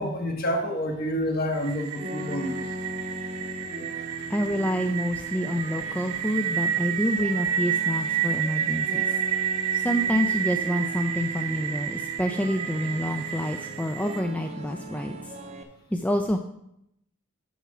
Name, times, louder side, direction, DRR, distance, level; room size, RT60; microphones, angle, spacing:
voice 1, 0.0-2.6, equal, 45° left, 2 dB, 1.4 m, -28 dB
sound 1, 1.5-14.2, right 8 dB, 80° right, 0.7 m, -30 dB
sound 2, 1.9-15.6, right 1 dB, 30° right, 0.8 m, -39 dB
voice 2, 4.3-9.2 9.8-15.2 15.9-16.4, equal, 5° left, 4 dB, 0.3 m, -27 dB
7.1 x 6.0 x 5.7 m, 0.80 s
head